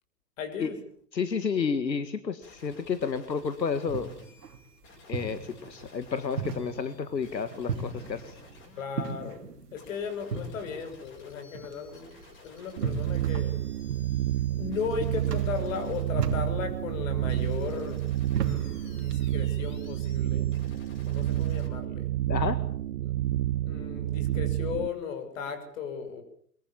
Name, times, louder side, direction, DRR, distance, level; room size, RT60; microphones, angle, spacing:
voice 1, 0.4-0.8 8.8-13.6 14.5-18.1 18.4-20.5 21.1-22.0 23.0-23.1 23.7-26.2, left 6 dB, 50° left, 6.4 m, -36 dB
voice 2, 1.1-4.1 5.1-8.3 22.3-22.6, left 6 dB, 90° left, 2.0 m, -31 dB
sound 1, 2.4-21.7, left 3 dB, 25° left, 7.4 m, -54 dB
sound 2, 3.4-19.3, right 5 dB, 70° right, 3.0 m, -39 dB
sound 3, 12.8-24.9, right 13 dB, 45° right, 1.1 m, -29 dB
23.5 x 21.5 x 7.2 m
hypercardioid pair, 135°, 49 cm